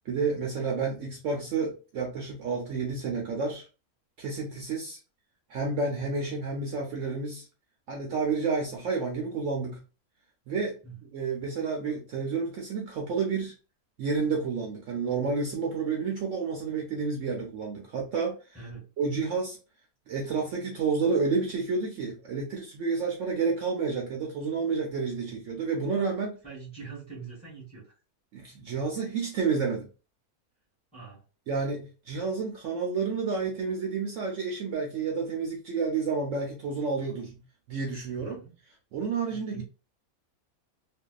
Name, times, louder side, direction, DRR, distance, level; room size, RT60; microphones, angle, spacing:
voice 1, 0.1-3.7 4.2-5.0 5.5-7.5 7.9-9.8 10.5-10.8 11.1-13.5 14.0-18.4 19.0-19.6 20.1-26.4 28.3-29.9 31.5-37.4 37.7-38.4 38.9-39.6, right 4 dB, 65° right, 0 dB, 0.8 m, -30 dB
voice 2, 18.5-18.9 26.4-27.9 30.9-31.2 38.1-38.6 39.3-39.6, right 5 dB, 5° left, -6 dB, 1.0 m, -44 dB
2.5 x 2.2 x 2.2 m, 0.33 s
omnidirectional pair, 1.6 m